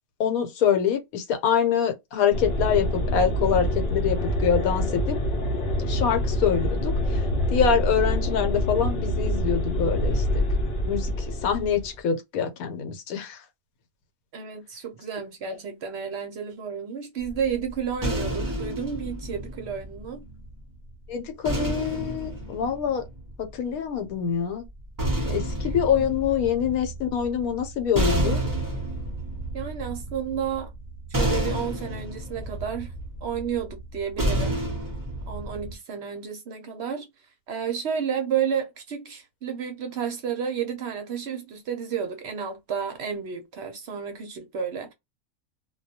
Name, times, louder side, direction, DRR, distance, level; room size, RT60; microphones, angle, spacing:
voice 1, 0.2-5.2 5.9-7.2 7.5-10.4 10.9-13.4 21.1-23.0 23.4-24.6 25.3-28.4, left 7 dB, 80° left, 1.1 m, -25 dB
sound 1, 2.3-11.9, equal, 55° left, 0.7 m, -26 dB
voice 2, 14.3-20.2 29.5-30.7 31.1-32.9 33.2-34.6 35.3-37.1 37.5-44.9, right 7 dB, 60° right, 0.7 m, -31 dB
sound 2, 17.2-20.5 21.4-23.7 24.7-35.7, right 1 dB, 25° right, 0.4 m, -30 dB
2.3 x 2.2 x 2.6 m
omnidirectional pair, 1.5 m